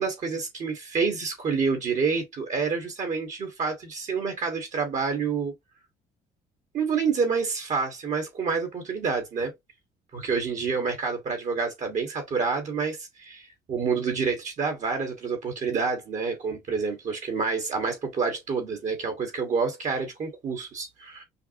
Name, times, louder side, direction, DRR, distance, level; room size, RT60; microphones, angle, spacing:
voice 1, 0.0-5.5 6.7-9.5 10.1-21.2, right 5 dB, 45° right, 1.3 m, -28 dB
5.7 x 2.1 x 2.6 m
cardioid pair, 110°, 17 cm